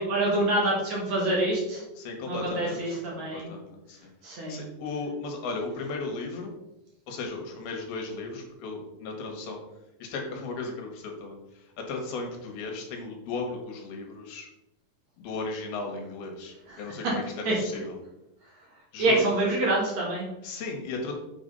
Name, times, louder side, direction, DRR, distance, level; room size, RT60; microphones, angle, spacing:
voice 1, 0.0-1.8 2.3-3.5 4.2-4.6 16.7-17.1 17.4-17.5 19.0-20.3, right 2 dB, 50° right, -3 dB, 2.5 m, -26 dB
voice 2, 2.0-2.8 3.2-4.0 4.5-6.5 7.1-9.6 10.0-11.4 11.8-14.5 15.2-17.2 17.5-18.0 18.9-19.2 20.4-21.1, left 3 dB, 70° left, 2 dB, 3.2 m, -35 dB
7.2 x 5.0 x 5.4 m, 0.89 s
omnidirectional pair, 4.7 m